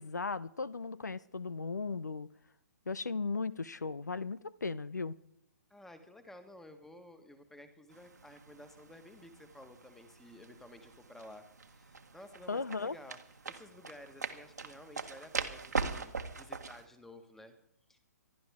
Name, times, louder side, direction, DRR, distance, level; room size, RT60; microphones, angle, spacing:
voice 1, 0.0-2.3 2.9-5.1 12.5-13.0, left 4 dB, 85° left, 0.6 m, -36 dB
voice 2, 5.7-13.2 13.4-17.5 17.9-18.0, left 1 dB, 5° left, 1.5 m, -54 dB
sound 1, 7.9-16.8, right 4 dB, 80° right, 1.6 m, -42 dB
26.5 x 12.0 x 3.6 m
figure-of-eight pair, 130°, 9 cm